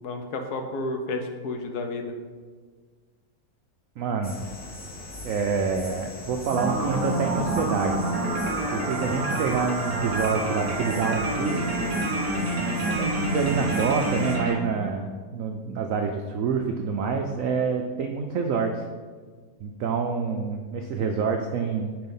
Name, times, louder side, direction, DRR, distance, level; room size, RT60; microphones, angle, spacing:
voice 1, 0.0-2.1, left 2 dB, 65° left, 5 dB, 1.1 m, -31 dB
voice 2, 4.0-4.4 5.2-8.1 8.7-11.8 12.9-18.8 19.6-21.9, right 5 dB, 80° right, 4 dB, 0.7 m, -27 dB
sound 1, 4.2-14.4, left 1 dB, 10° left, 0.5 m, -40 dB
sound 2, 6.5-14.6, right 1 dB, 25° right, 1.2 m, -27 dB
8.8 x 3.4 x 5.4 m, 1.5 s
omnidirectional pair, 2.0 m